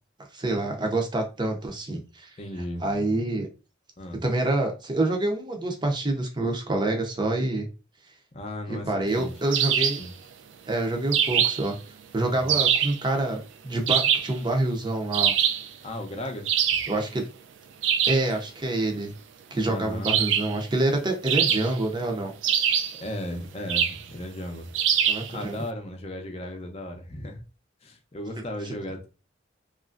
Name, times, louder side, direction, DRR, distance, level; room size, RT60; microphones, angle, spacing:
voice 1, 0.3-2.3 2.8-3.5 4.2-7.7 8.7-10.0 10.7-11.7 12.1-15.3 16.9-17.2 18.1-19.1 19.5-22.3 25.1-25.6, right 2 dB, 25° right, 2 dB, 0.6 m, -27 dB
voice 2, 2.4-2.9 4.0-4.2 8.3-9.3 10.0-10.1 12.3-12.6 15.8-16.6 19.7-20.1 23.0-24.7 25.3-27.4 27.8-29.1, left 1 dB, 30° left, 4 dB, 0.6 m, -36 dB
sound 1, 9.5-10.1 11.1-11.7 12.5-13.0 13.9-14.4 15.1-15.7 16.4-17.0 17.8-18.3 20.0-20.6 21.3-21.9 22.4-23.0 23.7-24.0 24.7-25.3, right 8 dB, 70° right, 0.3 m, -23 dB
3.0 x 2.4 x 2.4 m, 0.31 s
head